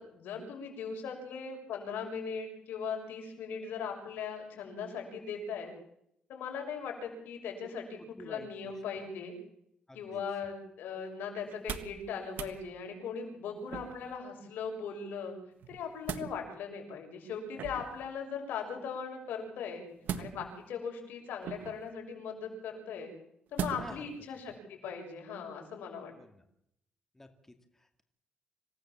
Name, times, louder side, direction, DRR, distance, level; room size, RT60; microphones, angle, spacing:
voice 1, 0.0-5.7 6.3-9.3 9.9-15.3 15.7-19.8 20.2-23.1 23.5-26.1, left 6 dB, 85° left, 2 dB, 6.6 m, -39 dB
voice 2, 8.2-8.7 9.9-10.2 23.8-24.1 26.2-26.4 27.1-28.0, left 2 dB, 10° left, 6 dB, 2.4 m, -50 dB
sound 1, 11.5-12.0 12.3-12.6 13.7-14.2 15.6-16.3 17.5-18.0 20.0-20.7 21.4-21.9 23.6-24.0 24.5-24.6, right 8 dB, 75° right, 1.5 m, -39 dB
26.5 x 17.0 x 7.6 m, 0.75 s
cardioid pair, 105°, 3 cm